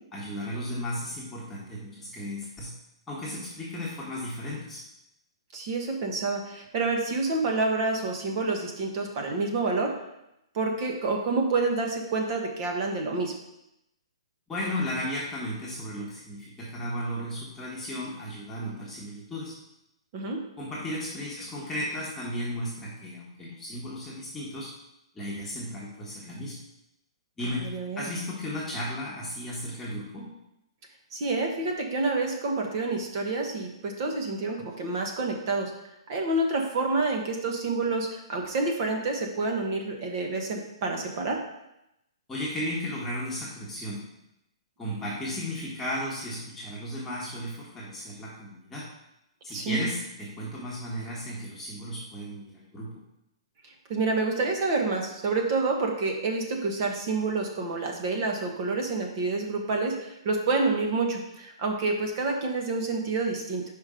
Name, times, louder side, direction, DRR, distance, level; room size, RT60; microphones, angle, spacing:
voice 1, 0.1-2.7 3.1-4.8 14.5-19.5 20.6-24.7 25.1-26.6 27.4-30.3 42.3-44.0 44.8-48.8 49.4-52.9, equal, 10° left, -6 dB, 1.3 m, -34 dB
voice 2, 5.5-9.9 10.5-13.3 20.1-20.4 27.4-28.1 31.1-35.7 36.1-41.4 49.5-49.9 53.6-63.6, right 3 dB, 40° right, 2 dB, 1.3 m, -28 dB
5.2 x 5.2 x 5.1 m, 0.86 s
hypercardioid pair, 150°, 3 cm